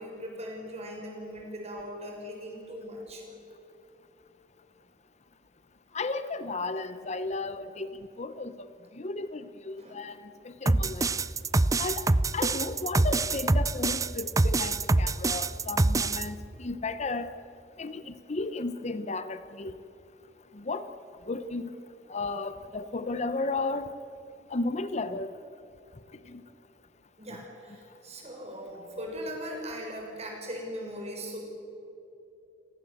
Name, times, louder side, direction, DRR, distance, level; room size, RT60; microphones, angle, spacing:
voice 1, 0.0-3.2 9.8-10.0 27.2-31.4, equal, 35° right, 0 dB, 6.6 m, -39 dB
voice 2, 5.9-8.7 8.9-10.2 10.4-11.2 11.8-12.1 12.3-17.3 17.8-19.8 20.5-20.9 21.3-21.7 22.1-23.9 24.5-25.3 26.3-26.4 27.3-27.4, left 3 dB, 35° left, 11 dB, 0.8 m, -34 dB
sound 1, 10.7-16.2, right 2 dB, 20° right, 0.5 m, -25 dB
29.5 x 18.5 x 8.0 m, 2.9 s
head